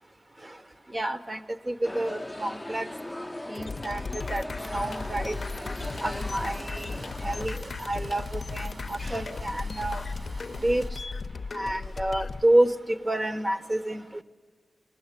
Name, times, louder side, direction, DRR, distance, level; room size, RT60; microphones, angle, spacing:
voice 1, 0.9-2.9 3.5-5.4 6.0-10.0 10.6-11.0 11.5-14.2, right 1 dB, 30° right, 11 dB, 1.0 m, -29 dB
sound 1, 1.8-7.5, left 1 dB, 10° left, 0.6 m, -38 dB
sound 2, 3.5-12.4, left 4 dB, 65° left, 0.6 m, -36 dB
sound 3, 4.6-10.9, right 1 dB, 60° right, 2.8 m, -44 dB
20.5 x 19.0 x 8.3 m, 1.5 s
cardioid pair, 55°, 0 cm